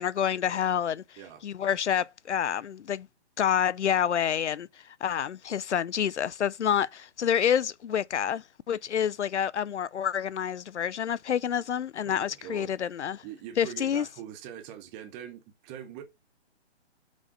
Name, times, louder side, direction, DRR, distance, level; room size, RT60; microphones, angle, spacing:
voice 1, 0.0-3.1 3.4-13.2 13.6-14.1, left 8 dB, 85° left, 0.6 m, -28 dB
voice 2, 12.1-12.7 13.2-16.0, right 9 dB, 15° right, 0.9 m, -43 dB
7.0 x 5.2 x 3.7 m
hypercardioid pair, 145°, 34 cm